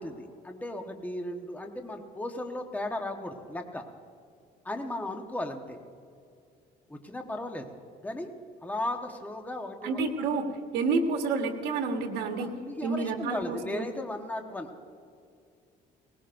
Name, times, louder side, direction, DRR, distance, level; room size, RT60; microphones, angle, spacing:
voice 1, 0.0-3.8 4.6-5.8 6.9-7.7 8.0-8.3 8.6-10.0 12.4-14.7, left 1 dB, 10° left, 4 dB, 1.2 m, -36 dB
voice 2, 9.8-10.5 10.7-12.5 12.8-13.9, right 4 dB, 80° right, 4 dB, 1.4 m, -29 dB
20.0 x 19.0 x 2.6 m, 2.3 s
cardioid pair, 110°, 17 cm